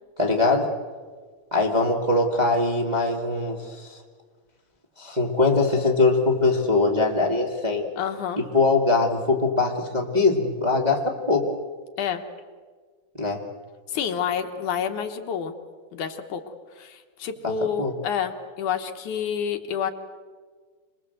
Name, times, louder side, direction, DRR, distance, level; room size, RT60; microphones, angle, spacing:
voice 1, 0.2-0.7 1.5-4.0 5.0-7.9 8.4-11.5 13.2-13.4 17.4-17.5 17.8-17.9, left 3 dB, 15° right, 0 dB, 1.6 m, -22 dB
voice 2, 8.0-8.4 12.0-12.2 13.9-15.5 15.9-16.4 16.8-19.9, left 7 dB, 70° left, 6 dB, 2.8 m, -28 dB
27.0 x 21.5 x 8.0 m, 1.6 s
omnidirectional pair, 3.7 m